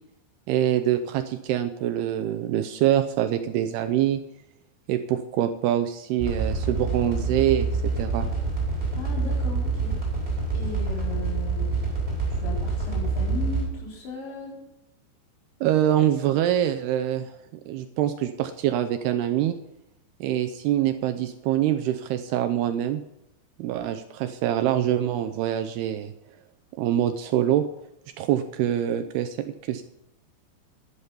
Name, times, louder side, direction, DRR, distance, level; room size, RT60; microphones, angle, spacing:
voice 1, 0.5-4.2 4.9-8.3 15.6-17.4 17.7-19.6 20.2-23.0 23.6-26.1 26.8-27.7 28.2-29.8, right 11 dB, 80° right, 9 dB, 2.4 m, -25 dB
sound 1, 6.2-13.7, right 4 dB, 10° right, 4.7 m, -27 dB
voice 2, 8.9-10.0 10.5-11.7 12.3-14.6, left 4 dB, 80° left, -3 dB, 6.5 m, -37 dB
12.0 x 11.5 x 5.6 m, 0.85 s
omnidirectional pair, 5.1 m